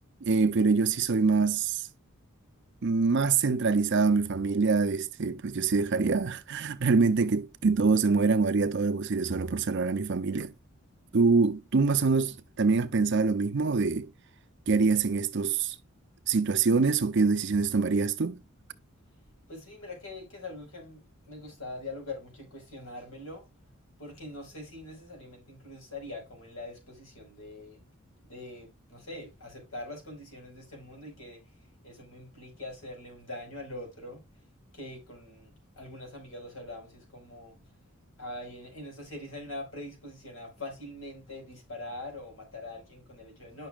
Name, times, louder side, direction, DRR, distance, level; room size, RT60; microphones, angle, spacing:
voice 1, 0.2-1.8 2.8-10.5 11.1-14.1 14.7-15.8 16.3-18.4, right 4 dB, 55° right, 0.6 m, -25 dB
voice 2, 19.5-23.4 24.0-27.8 28.2-31.4 31.8-34.2 34.7-37.6 38.2-43.7, left 2 dB, 75° left, 4.9 m, -43 dB
10.5 x 5.9 x 2.5 m
head